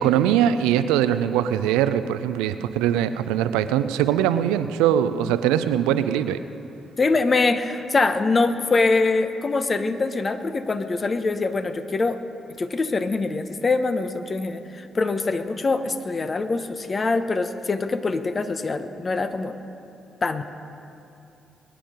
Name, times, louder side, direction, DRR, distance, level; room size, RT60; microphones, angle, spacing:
voice 1, 0.0-6.4, right 10 dB, 80° right, 12 dB, 0.5 m, -22 dB
voice 2, 7.0-12.2 12.6-19.5 20.2-20.4, left 3 dB, 40° left, 9 dB, 1.1 m, -24 dB
22.5 x 10.0 x 5.1 m, 2.8 s
hypercardioid pair, 40°, 0 cm